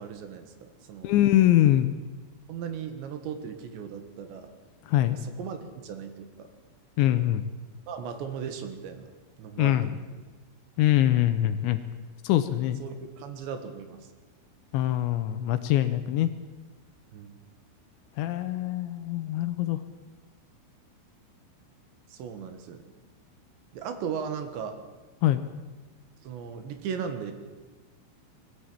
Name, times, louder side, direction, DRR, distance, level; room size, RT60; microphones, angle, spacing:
voice 1, 0.0-1.1 2.5-4.5 5.1-6.5 7.9-9.1 9.4-10.2 12.8-14.0 17.1-17.4 22.1-22.8 23.7-24.8 26.2-27.3, right 7 dB, 70° right, 8 dB, 3.6 m, -37 dB
voice 2, 1.0-1.9 4.9-5.2 7.0-7.4 9.6-9.9 10.8-11.8 12.2-12.8 14.7-16.3 18.2-19.8 25.2-25.4, left 13 dB, 80° left, 10 dB, 2.9 m, -23 dB
21.5 x 14.5 x 8.8 m, 1.3 s
omnidirectional pair, 5.8 m